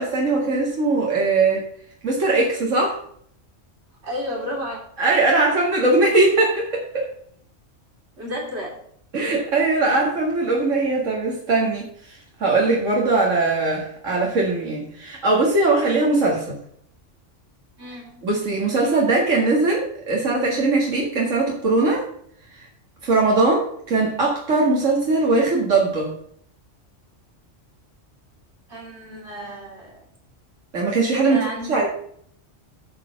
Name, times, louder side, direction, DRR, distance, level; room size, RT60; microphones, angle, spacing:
voice 1, 0.0-1.6 2.0-3.0 5.0-6.7 6.9-7.1 9.1-16.6 18.2-22.0 23.0-26.1 30.7-31.9, right 3 dB, 90° right, -2 dB, 2.3 m, -20 dB
voice 2, 4.0-4.8 8.2-8.8 17.8-18.2 28.7-30.1 31.3-31.9, equal, 60° right, -1 dB, 3.2 m, -32 dB
12.0 x 4.4 x 5.8 m, 0.63 s
omnidirectional pair, 1.3 m